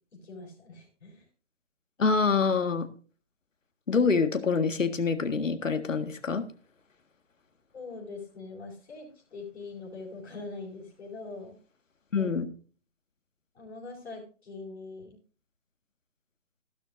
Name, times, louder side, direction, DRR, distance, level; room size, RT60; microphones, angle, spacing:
voice 1, 0.1-1.2 7.7-11.5 12.2-12.3 13.5-15.2, left 3 dB, 60° left, -7 dB, 5.5 m, -43 dB
voice 2, 2.0-2.9 3.9-6.4 12.1-12.4, left 5 dB, 80° left, 9 dB, 1.8 m, -26 dB
15.0 x 12.0 x 2.6 m, 0.38 s
figure-of-eight pair, 155°, 38 cm